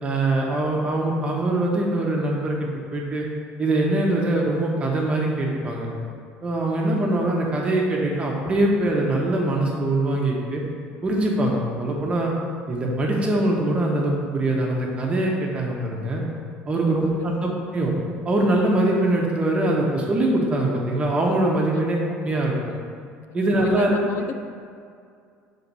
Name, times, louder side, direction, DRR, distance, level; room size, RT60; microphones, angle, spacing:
voice 1, 0.0-3.3 3.6-5.9 6.4-10.6 11.0-12.3 12.7-16.2 16.7-17.9 18.2-22.7 23.3-24.0, right 1 dB, 25° right, -1 dB, 1.1 m, -23 dB
voice 2, 16.7-17.3 21.7-22.0 23.3-24.4, left 7 dB, 55° left, 7 dB, 0.4 m, -36 dB
5.9 x 3.9 x 5.4 m, 2.3 s
cardioid pair, 125°, 5 cm